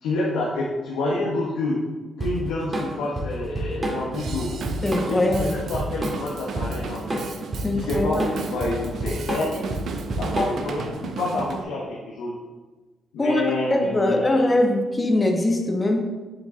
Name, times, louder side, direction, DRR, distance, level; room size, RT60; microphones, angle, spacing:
voice 1, 0.0-1.8 2.2-4.5 5.1-7.2 7.7-9.7 10.2-12.4 13.1-14.5, left 2 dB, 80° left, -4 dB, 1.1 m, -28 dB
Drum kit / Drum, 2.2-10.8, right 1 dB, 30° right, 2.0 m, -29 dB
Drum kit / Drum 2, 4.1-11.6, right 5 dB, 65° right, 0.7 m, -35 dB
voice 2, 4.8-5.5 7.6-8.2 13.2-13.4 13.7-16.0, left 1 dB, 25° left, 3 dB, 1.3 m, -22 dB
7.6 x 4.9 x 3.8 m, 1.3 s
supercardioid pair, 55°, 0 cm